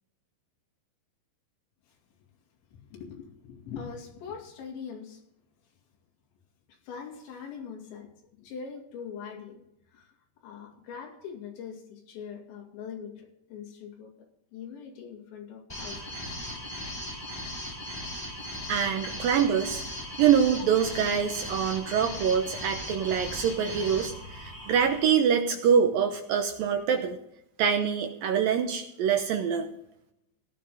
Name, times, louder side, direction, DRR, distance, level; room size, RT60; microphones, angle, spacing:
voice 1, 2.9-5.2 6.7-9.6 9.9-10.1 10.4-16.4 18.9-19.0 20.6-20.7, left 6 dB, 80° left, 0 dB, 4.7 m, -42 dB
sound 1, 15.7-25.0, left 1 dB, 5° left, 2.4 m, -38 dB
voice 2, 18.7-19.8 20.2-27.2 27.6-29.7, right 7 dB, 75° right, 5 dB, 2.1 m, -25 dB
17.0 x 11.0 x 3.7 m, 0.80 s
omnidirectional pair, 5.2 m